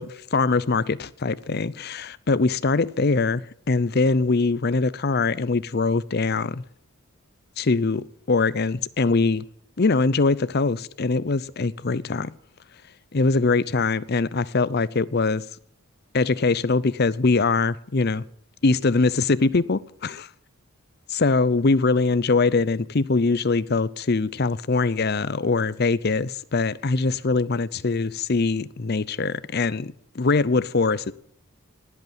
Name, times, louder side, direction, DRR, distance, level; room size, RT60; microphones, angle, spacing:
voice 1, 0.0-6.6 7.6-9.4 9.8-12.3 13.1-15.4 16.1-18.2 18.6-20.3 21.1-31.1, left 3 dB, 45° left, 0.6 m, -22 dB
19.0 x 8.4 x 8.9 m
head